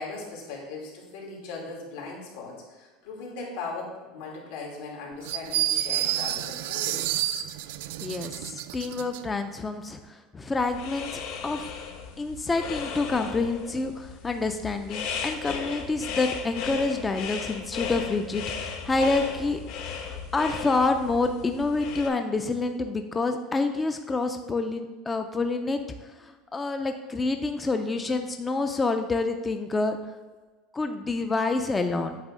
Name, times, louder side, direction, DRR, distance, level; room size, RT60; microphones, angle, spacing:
voice 1, 0.0-7.0, left 3 dB, 85° left, -2 dB, 2.5 m, -38 dB
sound 1, 5.2-9.2, right 13 dB, 75° right, 0.3 m, -29 dB
voice 2, 8.0-11.7 12.2-19.6 19.9-30.0 30.7-32.2, left 3 dB, 10° left, 7 dB, 0.3 m, -28 dB
sound 2, 10.6-22.1, left 6 dB, 55° left, 0.9 m, -36 dB
8.8 x 3.2 x 6.2 m, 1.3 s
cardioid pair, 170°, 0 cm